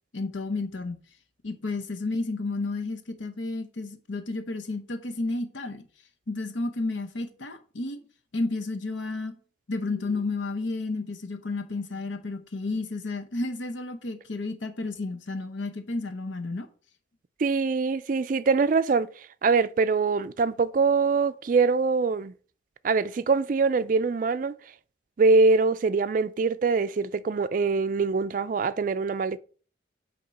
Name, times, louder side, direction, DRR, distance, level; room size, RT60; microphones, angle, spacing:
voice 1, 0.1-1.0 1.4-5.8 6.3-8.0 8.3-9.3 9.7-16.7, left 3 dB, 80° left, 0.8 m, -32 dB
voice 2, 17.4-22.3 22.8-24.5 25.2-29.4, right 4 dB, 45° right, 0.3 m, -23 dB
8.5 x 2.9 x 5.3 m
head